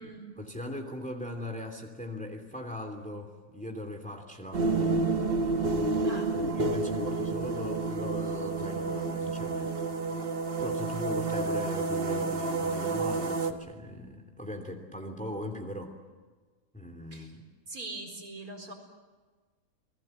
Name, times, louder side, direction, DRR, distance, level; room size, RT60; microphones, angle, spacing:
voice 1, 0.4-4.7 6.3-9.7 10.6-16.0 16.7-17.4, left 1 dB, 5° left, 4 dB, 2.9 m, -39 dB
sound 1, 4.5-13.5, right 3 dB, 40° right, 1.4 m, -30 dB
voice 2, 17.7-18.7, right 2 dB, 65° right, 2 dB, 4.8 m, -42 dB
29.5 x 20.5 x 7.9 m, 1.4 s
omnidirectional pair, 1.6 m